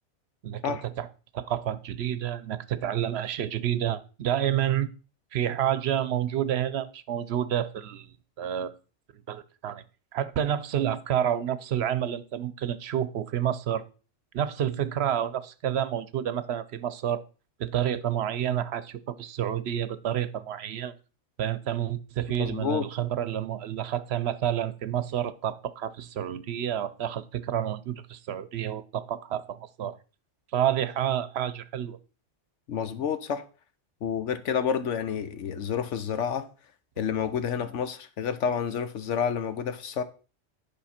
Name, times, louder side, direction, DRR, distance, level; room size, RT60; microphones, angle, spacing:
voice 1, 0.4-1.1 1.3-4.9 5.3-8.7 9.3-9.8 10.1-13.8 14.3-17.2 17.6-20.9 21.4-30.0 30.5-32.0, right 10 dB, 65° right, 0.8 m, -29 dB
voice 2, 22.4-22.9 32.7-33.4 34.0-36.5 37.0-40.0, left 7 dB, 85° left, 1.2 m, -29 dB
11.0 x 5.3 x 4.3 m
omnidirectional pair, 1.2 m